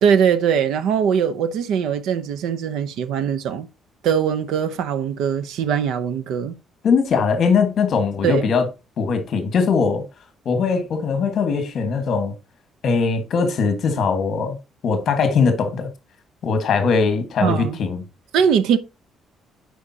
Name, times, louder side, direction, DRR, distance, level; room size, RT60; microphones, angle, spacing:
voice 1, 0.0-3.7 4.0-6.6 8.2-8.4 17.4-17.8 18.3-18.8, right 7 dB, 85° right, 0.7 m, -21 dB
voice 2, 6.8-8.7 9.0-10.1 10.4-12.3 12.8-14.6 14.8-15.9 16.4-18.0, left 5 dB, 45° left, 1.6 m, -20 dB
10.0 x 5.1 x 2.8 m
cardioid pair, 165°, 0 cm